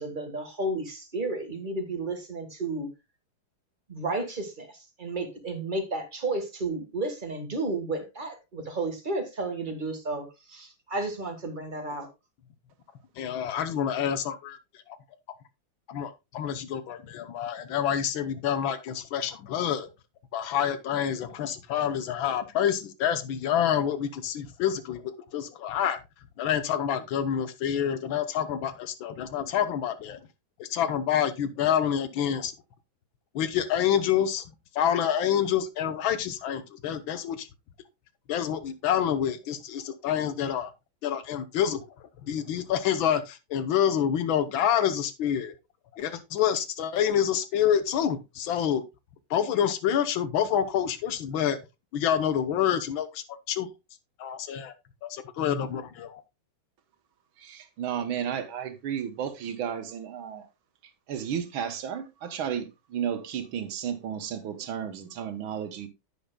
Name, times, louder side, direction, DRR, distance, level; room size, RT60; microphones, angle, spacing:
voice 1, 0.0-2.9 3.9-12.1, right 2 dB, 25° right, 1.5 m, -32 dB
voice 2, 13.2-14.6 14.9-15.0 15.9-19.9 20.3-26.0 26.4-30.2 30.6-32.5 33.4-34.5 34.7-37.5 38.3-40.7 41.0-45.6 45.9-48.8 49.3-51.6 51.9-53.7 54.2-54.7 55.0-56.2, left 9 dB, 75° left, 1.6 m, -27 dB
voice 3, 57.4-60.5 61.1-65.9, right 8 dB, 80° right, 1.8 m, -33 dB
10.5 x 9.2 x 2.2 m
omnidirectional pair, 2.2 m